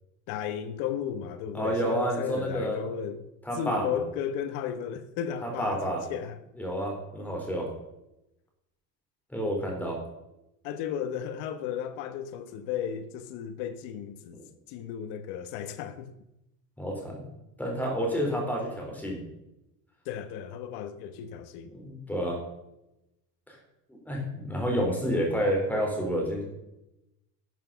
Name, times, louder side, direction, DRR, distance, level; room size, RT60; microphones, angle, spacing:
voice 1, 0.3-3.2 3.5-6.4 10.6-14.4 14.7-16.1 20.0-21.7, left 9 dB, 85° left, 1.2 m, -34 dB
voice 2, 1.5-2.8 3.4-4.0 5.4-6.0 6.6-7.7 9.3-10.0 16.8-17.2 17.6-19.2 21.7-22.4 23.5-23.6 23.9-26.4, equal, 5° left, 3.8 m, -29 dB
12.5 x 7.2 x 6.9 m
cardioid pair, 165°, 39 cm